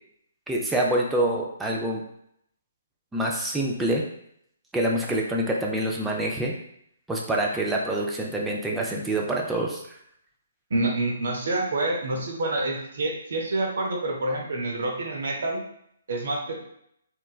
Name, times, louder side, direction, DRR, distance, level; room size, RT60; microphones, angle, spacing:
voice 1, 0.5-2.0 3.1-4.0 4.7-6.5 7.1-9.8, right 1 dB, 5° right, -2 dB, 0.4 m, -26 dB
voice 2, 10.7-15.6 16.1-16.6, right 2 dB, 60° right, 1 dB, 0.7 m, -27 dB
3.1 x 2.2 x 2.2 m, 0.72 s
figure-of-eight pair, 135°, 0 cm